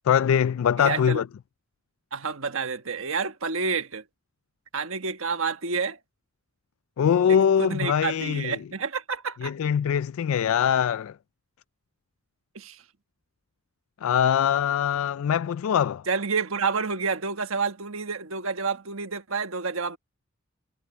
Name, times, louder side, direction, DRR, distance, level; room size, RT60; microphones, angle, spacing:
voice 1, 0.1-1.3 7.0-8.6 9.4-11.1 14.0-16.0, left 8 dB, 75° left, 0.3 m, -22 dB
voice 2, 0.8-1.2 2.1-4.0 4.7-6.0 7.3-9.5 12.5-12.8 16.1-20.0, right 5 dB, 70° right, 1.4 m, -29 dB
head